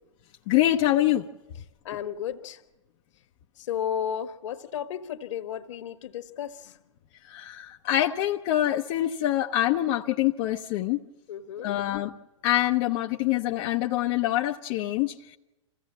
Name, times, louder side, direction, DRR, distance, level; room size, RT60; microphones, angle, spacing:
voice 1, 0.5-1.3 7.3-11.0 11.6-12.1 12.4-15.4, left 13 dB, 45° left, 3 dB, 0.7 m, -25 dB
voice 2, 1.8-2.6 3.6-6.8 11.3-11.7, left 9 dB, 65° left, 9 dB, 1.4 m, -33 dB
26.5 x 16.0 x 7.3 m, 1.1 s
hypercardioid pair, 115°, 17 cm